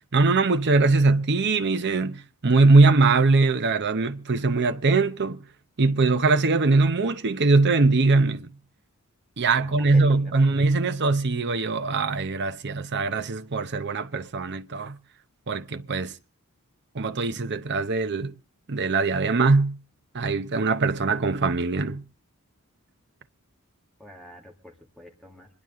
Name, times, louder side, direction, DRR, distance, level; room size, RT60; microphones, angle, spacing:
voice 1, 0.1-5.4 5.8-8.5 9.4-15.0 15.5-16.1 16.9-18.3 18.7-19.8 20.1-22.0, right 3 dB, 50° right, 0.8 m, -21 dB
voice 2, 9.6-10.3 24.0-25.5, left 1 dB, ahead, 2.0 m, -45 dB
26.5 x 11.0 x 3.7 m
head